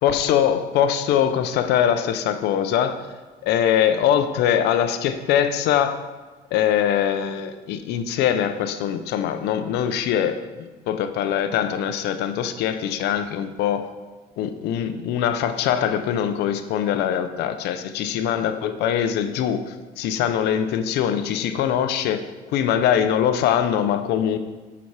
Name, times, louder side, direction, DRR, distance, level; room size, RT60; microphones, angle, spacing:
voice 1, 0.0-3.0 3.4-6.0 6.5-13.9 14.4-24.4, left 9 dB, 80° left, 10 dB, 0.6 m, -22 dB
6.9 x 6.1 x 4.7 m, 1.2 s
cardioid pair, 110°, 17 cm